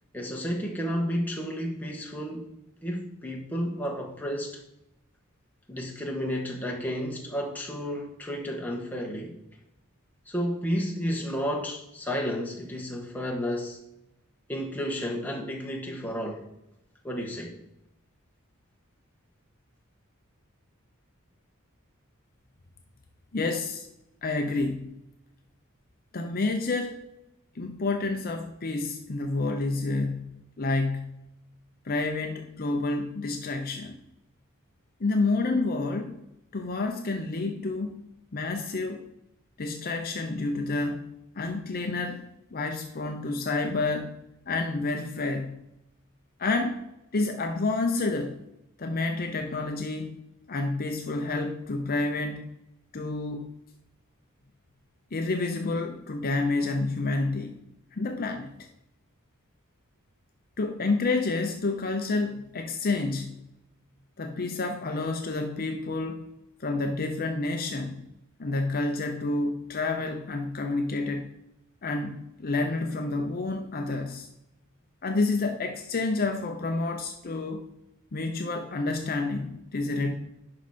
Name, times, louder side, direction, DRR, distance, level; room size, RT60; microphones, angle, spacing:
voice 1, 0.1-2.5 2.8-4.6 5.7-9.3 10.3-13.8 14.5-16.5 17.0-17.5, equal, 10° left, 1.4 m, -32 dB
voice 2, 23.3-23.9 24.2-24.9 26.1-27.1 27.5-31.2 31.8-33.9 35.0-36.2 36.5-38.0 38.3-39.1 39.6-41.1 41.3-42.2 42.5-45.6 46.4-46.8 47.1-48.4 48.8-50.2 50.5-52.5 52.9-53.5 55.1-57.5 57.9-58.7 60.6-63.4 64.2-66.3 66.6-68.0 68.4-71.3 71.8-74.3 75.0-77.7 78.1-80.2, left 3 dB, 45° left, 0.7 m, -29 dB
11.0 x 4.8 x 4.3 m
head